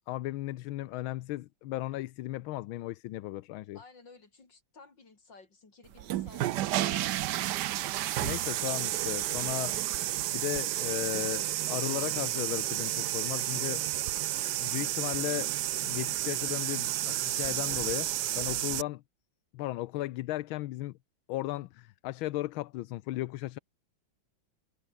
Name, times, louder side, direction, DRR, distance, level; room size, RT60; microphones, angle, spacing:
voice 1, 0.1-3.8 8.2-9.8 10.3-13.8 14.5-15.5 15.8-18.1 18.4-19.0 19.5-20.9 21.3-23.6, left 16 dB, 80° left, 1.5 m, -35 dB
voice 2, 3.7-6.8, left 4 dB, 60° left, 4.8 m, -55 dB
sound 1, 5.9-18.8, right 14 dB, 70° right, 1.1 m, -31 dB
omnidirectional pair, 2.3 m